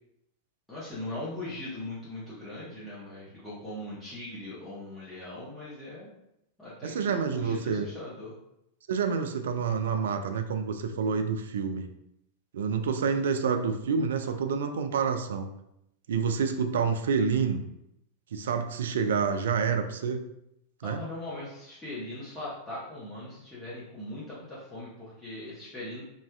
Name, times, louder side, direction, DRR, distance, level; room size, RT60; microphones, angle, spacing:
voice 1, 0.7-6.1 6.6-8.3 20.8-26.0, left 1 dB, 10° left, -10 dB, 1.0 m, -40 dB
voice 2, 6.8-7.9 8.9-11.9 12.5-15.5 16.1-17.6 18.3-20.3 20.8-21.0, right 6 dB, 60° right, 7 dB, 0.3 m, -28 dB
4.2 x 2.3 x 2.3 m, 0.80 s
figure-of-eight pair, 90°, 0 cm